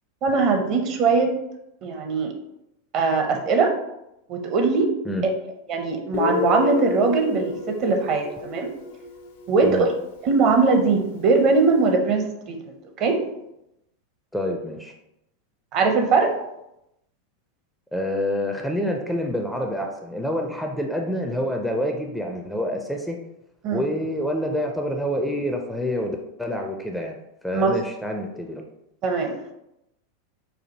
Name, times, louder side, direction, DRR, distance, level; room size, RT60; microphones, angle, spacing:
voice 1, 0.2-1.3 1.8-2.3 2.9-3.7 4.3-4.9 5.7-8.7 9.5-9.9 10.2-13.2 15.7-16.3 23.6-23.8 27.5-27.7 29.0-29.3, right 4 dB, 40° right, 4 dB, 0.6 m, -21 dB
Guitar, 6.1-9.7, left 5 dB, 60° left, 0.5 m, -29 dB
voice 2, 14.3-14.9 17.9-23.2 23.7-27.2 27.4-28.6, equal, ahead, 2 dB, 0.4 m, -27 dB
4.2 x 2.5 x 2.8 m, 0.86 s
figure-of-eight pair, 90°, 0 cm